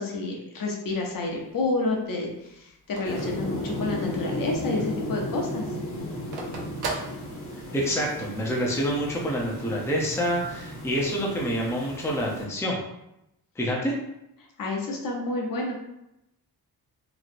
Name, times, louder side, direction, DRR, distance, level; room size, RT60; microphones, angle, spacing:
voice 1, 0.0-5.6 14.6-15.7, left 2 dB, 60° left, 0 dB, 0.7 m, -29 dB
Telephone, 0.9-4.3 4.7-4.8 5.0-7.9, right 3 dB, 75° right, 0.7 m, -38 dB
sound 1, 3.0-12.4, equal, 35° left, 1.0 m, -35 dB
voice 2, 7.7-12.8 13.6-13.9, equal, 5° left, -3 dB, 0.5 m, -27 dB
3.1 x 2.6 x 2.5 m, 0.86 s
wide cardioid pair, 120°, 39 cm